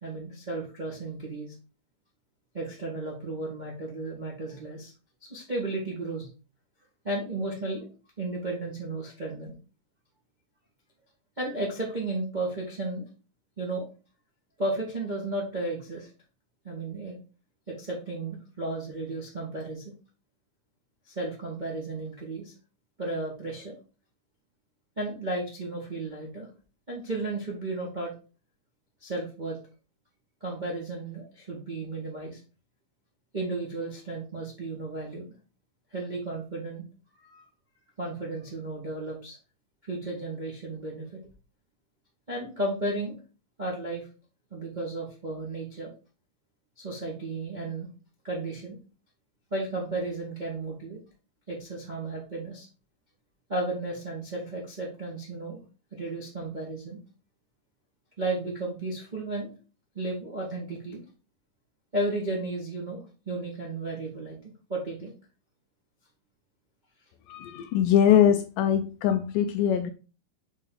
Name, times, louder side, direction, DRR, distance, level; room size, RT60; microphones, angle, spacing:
voice 1, 0.0-1.5 2.5-4.9 5.2-6.3 7.0-7.9 8.2-9.6 11.4-13.0 13.6-13.9 14.6-16.1 16.6-17.2 17.7-19.8 21.1-22.5 23.0-23.8 25.0-26.5 26.9-28.1 29.0-29.6 30.4-32.4 33.3-35.4 35.9-36.8 37.2-37.4 38.0-39.4 39.8-41.2 42.3-43.2 43.6-44.1 44.5-45.9 46.8-47.9 48.2-48.8 49.5-51.0 51.5-52.7 53.5-55.6 55.9-57.0 58.2-59.5 59.9-61.0 61.9-65.1 68.1-68.2, right 2 dB, 75° right, 0.4 m, -34 dB
voice 2, 67.3-69.9, left 9 dB, 80° left, 1.9 m, -22 dB
7.3 x 3.8 x 3.8 m
omnidirectional pair, 4.1 m